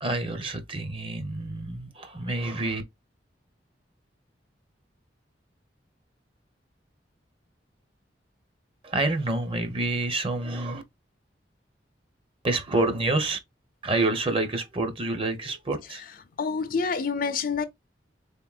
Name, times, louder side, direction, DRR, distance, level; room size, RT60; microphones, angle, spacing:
voice 1, 0.0-2.8 8.8-10.8 12.4-13.4 13.8-16.0, right 2 dB, 30° right, 0.8 m, -28 dB
voice 2, 16.4-17.7, left 5 dB, 50° left, 0.5 m, -27 dB
3.8 x 3.6 x 2.4 m
head